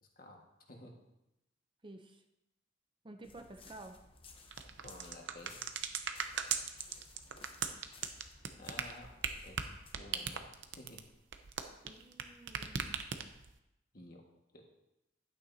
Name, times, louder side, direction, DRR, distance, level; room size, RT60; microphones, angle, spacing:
voice 1, 0.0-0.4 0.7-0.9 3.7-3.8 4.8-5.8 8.6-9.1 9.4-9.6 9.9-10.5 10.7-11.0 13.9-14.2 14.5-14.6, left 1 dB, 50° left, 0 dB, 1.6 m, -52 dB
voice 2, 1.8-2.2 3.0-4.0 11.8-12.9, right 2 dB, 25° right, 6 dB, 0.5 m, -51 dB
sound 1, 3.2-9.9, left 3 dB, 30° left, 0.8 m, -58 dB
sound 2, 4.5-12.2 12.5-13.5, right 7 dB, 70° right, 0.7 m, -38 dB
11.5 x 9.0 x 2.7 m, 0.90 s
head